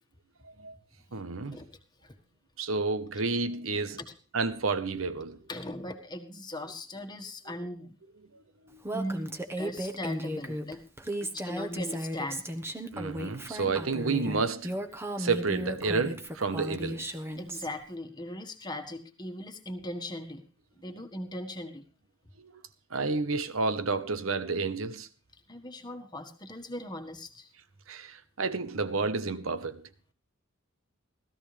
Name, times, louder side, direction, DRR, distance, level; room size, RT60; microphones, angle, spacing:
voice 1, 0.4-0.8 1.1-1.6 2.6-4.0 4.3-5.4 8.7-8.8 12.9-14.8 15.2-17.0 22.4-22.6 22.9-25.1 27.9-29.8, right 4 dB, 80° right, 1.1 m, -30 dB
voice 2, 5.5-8.0 8.9-10.8 11.2-12.5 17.4-20.4 20.7-21.8 25.5-27.5, left 1 dB, 20° left, 1.6 m, -39 dB
Female speech woman speaking, 8.8-17.7, equal, 10° right, 1.2 m, -35 dB
17.0 x 14.0 x 3.4 m
head